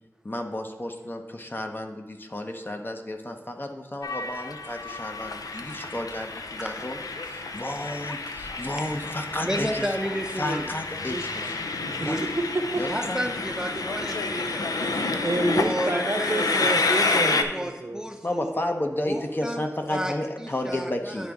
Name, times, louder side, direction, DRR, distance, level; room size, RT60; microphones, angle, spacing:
voice 1, 0.2-11.8 12.1-12.2 12.7-13.2 14.9-15.2 18.2-21.3, left 1 dB, 35° left, 4 dB, 0.7 m, -32 dB
Train, 4.0-17.4, left 3 dB, 85° left, 0.4 m, -29 dB
voice 2, 9.4-10.6 11.1-11.6 11.9-12.3 12.9-14.7 15.3-16.6 17.2-18.5 19.1-19.6 19.9-20.1 20.4-21.3, equal, 10° right, 4 dB, 0.6 m, -32 dB
voice 3, 12.0-12.8 13.7-13.8 14.8-18.0, right 2 dB, 45° right, 5 dB, 0.8 m, -29 dB
10.0 x 3.8 x 3.5 m, 1.1 s
wide cardioid pair, 45°, 6 cm